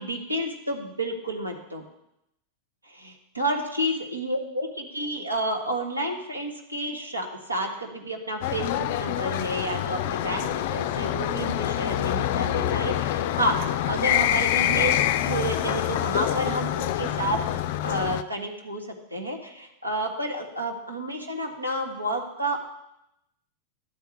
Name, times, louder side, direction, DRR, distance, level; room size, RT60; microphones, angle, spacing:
voice 1, 0.0-1.8 2.8-17.4 17.8-22.6, right 1 dB, 85° right, 1 dB, 1.5 m, -30 dB
sound 1, 8.4-18.2, left 12 dB, 50° left, 0.4 m, -26 dB
11.0 x 4.6 x 8.3 m, 0.83 s
figure-of-eight pair, 90°, 0 cm